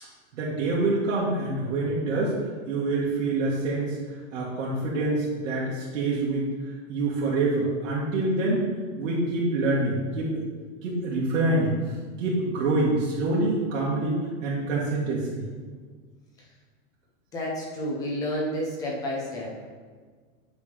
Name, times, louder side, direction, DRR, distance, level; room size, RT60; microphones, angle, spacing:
voice 1, 0.3-2.3 2.7-4.0 4.3-6.5 6.9-8.6 9.0-10.3 10.8-11.7 12.2-15.4, right 2 dB, 85° right, -6 dB, 1.8 m, -26 dB
voice 2, 17.3-19.5, equal, 10° left, -3 dB, 0.5 m, -30 dB
8.2 x 3.5 x 5.1 m, 1.5 s
supercardioid pair, 175°, 37 cm